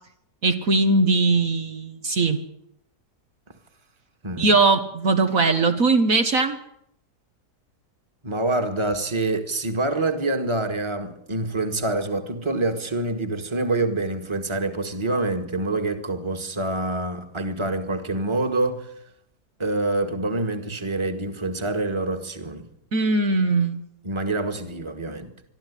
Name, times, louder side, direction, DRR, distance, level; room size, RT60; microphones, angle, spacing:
voice 1, 0.4-2.4 4.4-6.6 22.9-23.8, right 3 dB, 60° right, 1.7 m, -20 dB
voice 2, 8.2-18.9 19.6-22.7 24.0-25.3, right 2 dB, 15° right, 1.8 m, -26 dB
23.5 x 13.5 x 9.9 m
omnidirectional pair, 1.7 m